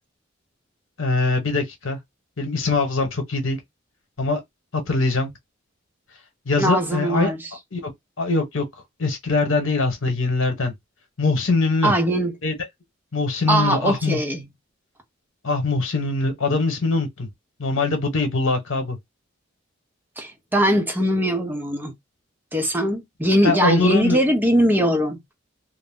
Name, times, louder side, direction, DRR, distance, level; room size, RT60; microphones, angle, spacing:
voice 1, 1.0-2.0 2.4-3.6 4.2-4.4 4.7-5.3 6.5-7.3 7.7-7.9 8.2-8.6 9.0-10.7 11.2-11.9 12.4-12.5 13.1-14.2 15.4-17.3 17.6-19.0 23.4-24.2, left 3 dB, 75° left, 1.0 m, -22 dB
voice 2, 6.6-7.4 11.8-12.3 13.5-14.4 20.2-21.9 22.5-25.2, equal, 10° right, 0.6 m, -21 dB
2.4 x 2.0 x 3.6 m
head